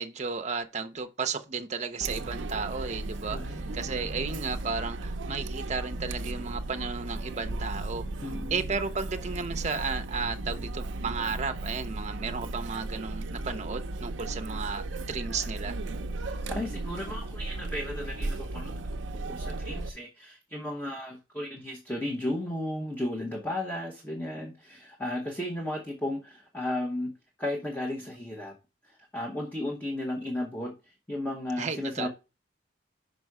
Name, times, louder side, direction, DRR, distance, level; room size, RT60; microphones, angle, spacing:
voice 1, 0.0-3.4 3.7-8.1 8.5-15.8 31.6-32.1, right 5 dB, 35° right, 0.7 m, -33 dB
Chatter, 2.0-19.9, right 2 dB, 75° right, 0.5 m, -35 dB
voice 2, 3.3-4.4 8.2-8.7 16.2-18.8 19.3-27.1 27.4-28.5 28.8-32.1, left 1 dB, 10° left, 1.1 m, -35 dB
5.4 x 5.3 x 4.8 m
head